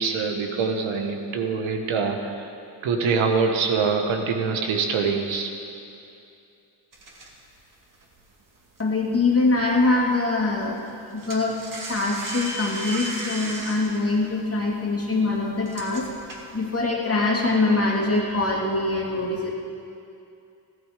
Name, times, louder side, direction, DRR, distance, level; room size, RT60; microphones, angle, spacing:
voice 1, 0.0-2.3 2.8-5.5, right 5 dB, 80° right, 4 dB, 1.4 m, -24 dB
Sliding Door Blinds, 6.9-9.7 9.9-10.2 10.5-16.8, right 2 dB, 45° right, 2.3 m, -37 dB
voice 2, 8.8-10.8 11.1-11.6 11.9-16.1 16.5-19.5, left 3 dB, 30° left, -2 dB, 2.4 m, -23 dB
15.0 x 12.0 x 5.1 m, 2.6 s
supercardioid pair, 55°, 46 cm